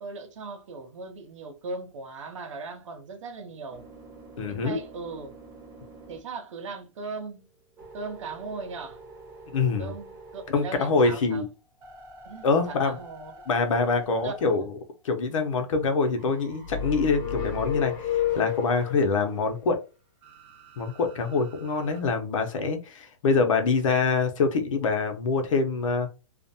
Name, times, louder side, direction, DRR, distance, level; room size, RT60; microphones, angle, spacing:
voice 1, 0.0-3.8 4.5-5.3 6.1-7.5 7.9-9.0 9.8-11.4 12.2-13.3 14.2-14.7, right 4 dB, 75° right, 0.8 m, -38 dB
sound 1, 3.5-6.9 7.4-10.9 11.4-15.1 16.2-18.9 20.2-22.0, right 2 dB, 15° right, 0.5 m, -49 dB
voice 2, 4.4-4.8 9.5-9.9 10.5-11.5 12.4-13.0 13.5-14.7 15.0-19.8 20.8-26.1, left 4 dB, 80° left, 0.7 m, -25 dB
sound 2, 16.6-19.1, left 9 dB, 35° left, 0.6 m, -30 dB
2.5 x 2.1 x 2.6 m
hypercardioid pair, 160°, 16 cm